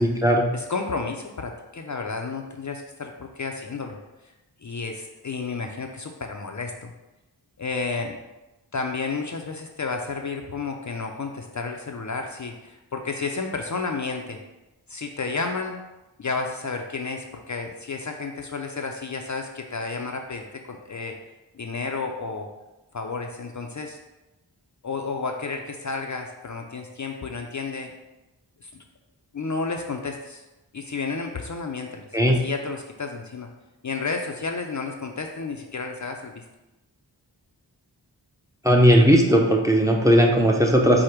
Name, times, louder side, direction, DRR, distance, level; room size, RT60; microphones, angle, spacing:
voice 1, 0.0-0.5 32.1-32.4 38.6-41.0, equal, 10° right, 0 dB, 0.5 m, -17 dB
voice 2, 0.5-4.0 4.6-6.9 7.6-8.2 8.7-14.4 14.9-15.8 16.2-21.1 21.5-22.5 22.9-24.0 24.8-27.9 28.6-28.7 29.3-30.4 30.7-32.0 32.3-33.5 33.8-36.4, left 4 dB, 45° left, 3 dB, 0.4 m, -31 dB
4.9 x 2.1 x 4.4 m, 1.0 s
wide cardioid pair, 45°, 43 cm